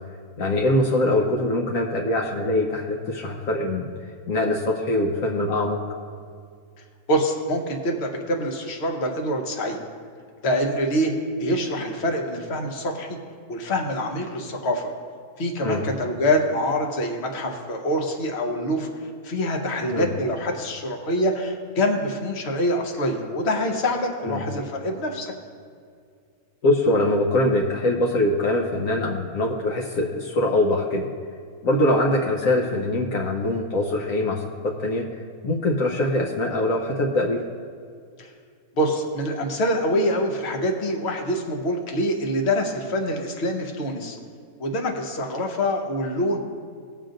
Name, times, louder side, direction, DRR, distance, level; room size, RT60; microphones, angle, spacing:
voice 1, 0.4-5.8 15.6-15.8 19.9-20.1 24.2-24.4 26.6-31.1 31.6-35.1 35.4-37.4, left 1 dB, 70° left, -1 dB, 1.2 m, -23 dB
voice 2, 7.1-9.8 10.4-11.1 11.4-13.1 13.5-14.9 15.4-18.9 19.2-25.3 38.2-38.3 38.7-44.2 44.6-46.4, equal, 50° left, 2 dB, 1.3 m, -25 dB
20.0 x 7.3 x 2.6 m, 2.2 s
omnidirectional pair, 1.5 m